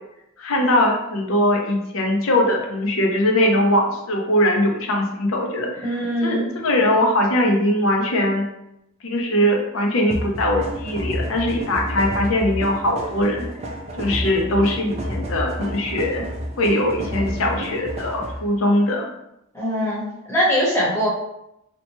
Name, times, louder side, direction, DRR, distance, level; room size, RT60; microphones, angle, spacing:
voice 1, 0.4-5.9 6.2-8.5 9.0-13.5 14.0-16.2 16.6-19.1, left 1 dB, 75° left, 1 dB, 0.6 m, -21 dB
voice 2, 5.8-6.5 19.5-21.1, equal, 10° left, -8 dB, 0.9 m, -22 dB
sound 1, 10.1-18.5, equal, 30° right, 0.4 m, -30 dB
2.8 x 2.2 x 2.9 m, 0.84 s
head